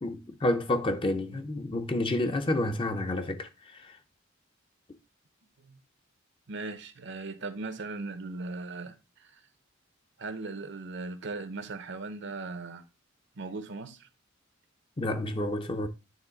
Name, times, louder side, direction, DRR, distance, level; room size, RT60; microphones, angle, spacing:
voice 1, 0.0-3.5 15.0-15.9, left 1 dB, 25° left, 0.6 m, -29 dB
voice 2, 6.5-9.4 10.2-12.8 13.4-14.1, right 3 dB, 60° right, 0.8 m, -38 dB
9.2 x 3.2 x 3.9 m
head